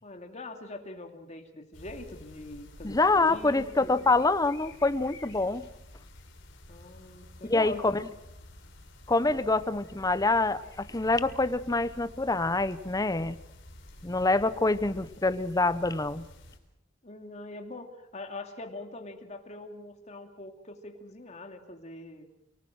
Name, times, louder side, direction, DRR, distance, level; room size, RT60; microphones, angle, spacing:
voice 1, 0.0-4.1 6.7-8.0 17.0-22.3, left 2 dB, 35° left, 5 dB, 2.6 m, -43 dB
sound 1, 1.7-16.6, left 1 dB, 70° left, 4.1 m, -50 dB
voice 2, 2.8-5.7 7.5-8.1 9.1-13.4 14.0-16.3, left 2 dB, 20° left, 14 dB, 0.8 m, -26 dB
29.5 x 19.5 x 6.3 m, 0.85 s
head